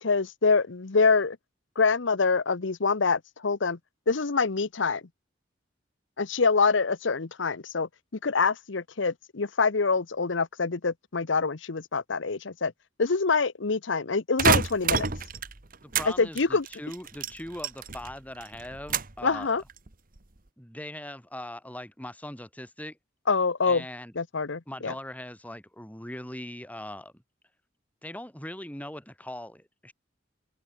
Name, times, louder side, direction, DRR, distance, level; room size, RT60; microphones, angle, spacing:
voice 1, 0.0-1.4 1.8-3.8 4.1-5.0 6.2-7.9 8.2-12.7 13.0-15.1 16.2-16.7 19.2-19.6 23.3-23.8 24.2-24.9, left 4 dB, 75° left, 0.9 m, -25 dB
sound 1, 14.4-16.1 16.4-18.1 18.4-19.2 19.7-20.2, right 5 dB, 45° right, 1.7 m, -27 dB
voice 2, 15.8-19.5 20.6-23.0 23.7-24.1 24.7-27.1 28.0-29.9, left 1 dB, 10° left, 5.4 m, -40 dB
open air
head